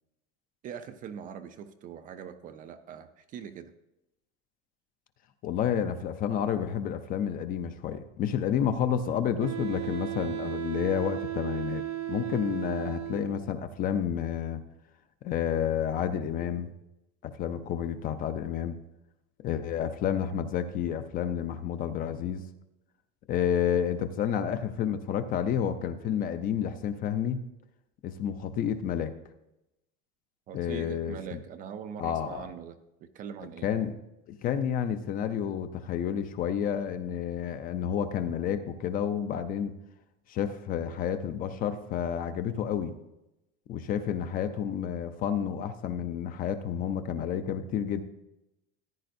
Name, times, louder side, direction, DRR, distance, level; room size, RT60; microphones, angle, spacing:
voice 1, 0.6-3.7 30.5-33.7, right 8 dB, 30° right, 9 dB, 0.4 m, -42 dB
voice 2, 5.4-14.6 15.2-16.7 17.2-18.8 19.4-22.4 23.3-27.4 28.0-29.1 30.5-31.4 32.0-32.5 33.6-33.9 34.4-39.7 40.3-42.9 43.7-48.0, left 9 dB, 30° left, 10 dB, 0.5 m, -30 dB
Wind instrument woodwind instrument, 9.4-13.5, right 14 dB, 90° right, 1.1 m, -35 dB
14.5 x 9.9 x 2.6 m, 0.91 s
cardioid pair, 160°, 30 cm